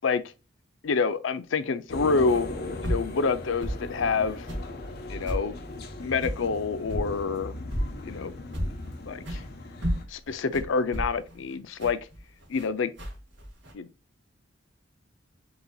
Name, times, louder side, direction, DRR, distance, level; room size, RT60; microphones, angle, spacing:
voice 1, 0.8-2.5 2.8-4.5 5.1-5.6 6.0-7.5 8.0-8.3 9.1-9.4 10.1-12.0 12.5-12.9 13.7-13.9, left 4 dB, 70° left, 0.5 m, -27 dB
sound 1, 1.9-10.0, left 2 dB, 55° left, 0.8 m, -38 dB
sound 2, 2.8-3.1 3.6-3.8 4.5-4.7 5.2-5.5 6.2-6.4 6.9-7.1 7.7-8.0 8.5-8.9 9.2-9.5 9.8-12.7 13.0-13.7, equal, 65° right, 1.8 m, -31 dB
7.8 x 2.8 x 2.3 m
head